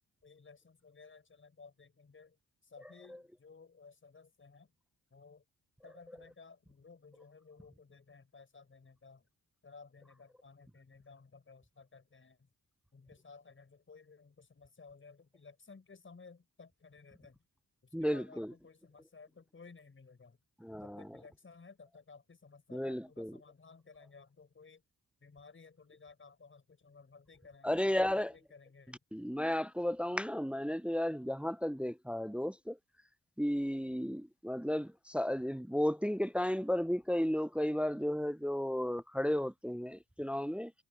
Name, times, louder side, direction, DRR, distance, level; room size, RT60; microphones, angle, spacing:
voice 1, 0.2-2.4 2.6-4.7 5.1-5.4 5.8-9.3 9.6-12.5 12.9-17.4 17.8-20.4 20.8-24.8 25.2-29.0, left 4 dB, 35° left, 6.0 m, -57 dB
voice 2, 17.9-18.5 20.6-21.2 22.7-23.4 27.6-28.3 29.1-32.8 33.4-40.7, left 1 dB, 5° right, 0.4 m, -34 dB
cardioid pair, 100°, 34 cm